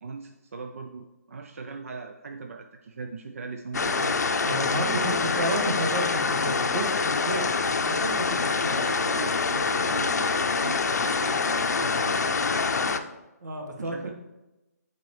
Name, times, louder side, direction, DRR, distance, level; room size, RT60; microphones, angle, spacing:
voice 1, 0.0-4.2 4.8-5.2 8.6-12.2 13.8-14.1, right 4 dB, 50° right, 5 dB, 0.5 m, -39 dB
sound 1, 3.7-13.0, left 4 dB, 70° left, 0.6 m, -25 dB
voice 2, 4.4-8.8 13.4-14.1, right 1 dB, 85° right, 1 dB, 1.6 m, -31 dB
10.5 x 4.0 x 3.2 m, 1.0 s
hypercardioid pair, 170°, 9 cm